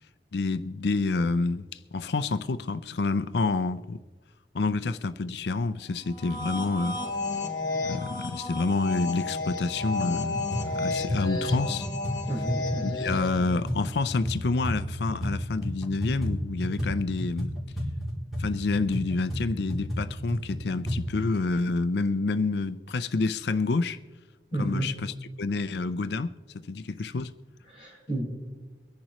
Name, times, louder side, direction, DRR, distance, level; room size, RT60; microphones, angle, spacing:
voice 1, 0.3-1.7 1.9-4.0 4.5-7.0 7.8-11.9 12.8-17.5 18.4-24.0 24.6-26.3 26.7-27.3, left 3 dB, 60° left, 0.5 m, -28 dB
sound 1, 6.1-13.5, left 3 dB, 20° left, 1.4 m, -32 dB
sound 2, 9.8-10.1 10.3-15.3 15.6-21.0, equal, ahead, 3.3 m, -32 dB
voice 2, 12.3-13.0 24.5-24.9 27.7-28.2, right 1 dB, 30° right, 4.8 m, -31 dB
23.5 x 10.5 x 3.0 m
head